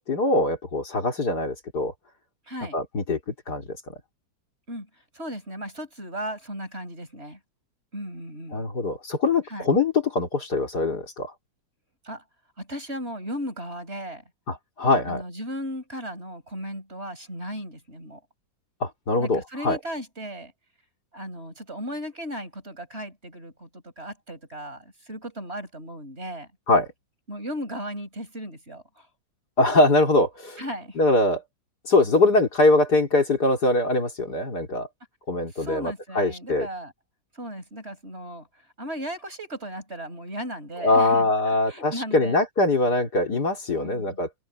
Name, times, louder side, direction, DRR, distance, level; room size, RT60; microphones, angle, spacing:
voice 1, 0.0-1.9 2.7-3.2 3.5-3.7 8.5-11.3 14.5-15.2 18.8-19.8 26.7-26.9 29.6-30.6 31.0-31.4 31.9-34.9 35.3-36.7 40.8-44.3, left 2 dB, 55° left, 3.8 m, -22 dB
voice 2, 2.5-2.8 4.7-7.4 7.9-8.6 9.5-9.7 12.0-12.2 12.6-14.2 15.0-18.2 19.2-20.5 21.1-26.5 27.3-29.1 30.6-31.0 35.5-36.9 37.3-38.5 38.8-42.4 43.7-44.2, equal, 30° right, 5.8 m, -36 dB
omnidirectional pair, 2.0 m